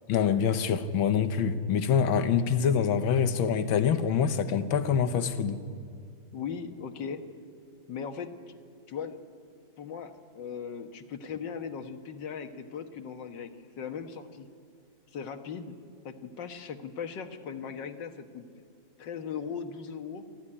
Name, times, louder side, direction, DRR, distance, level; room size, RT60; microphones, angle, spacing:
voice 1, 0.1-5.6, left 7 dB, 90° left, 11 dB, 1.8 m, -25 dB
voice 2, 6.3-7.2 7.9-8.3 8.9-9.2 9.8-13.5 13.8-14.5 15.1-15.7 16.1-18.5 19.0-20.2, left 6 dB, 65° left, 7 dB, 1.9 m, -38 dB
26.5 x 14.0 x 9.9 m, 2.3 s
omnidirectional pair, 2.1 m